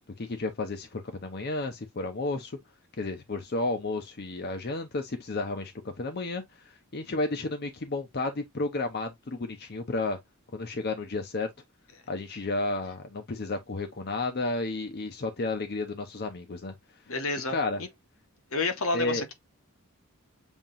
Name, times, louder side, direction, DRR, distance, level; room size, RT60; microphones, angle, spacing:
voice 1, 0.2-2.6 3.0-10.2 10.5-11.5 12.1-16.7 17.5-17.8 18.9-19.2, left 2 dB, 45° left, 0.6 m, -32 dB
voice 2, 17.1-17.9 18.5-19.3, left 3 dB, 75° left, 1.1 m, -30 dB
7.1 x 2.9 x 2.5 m
head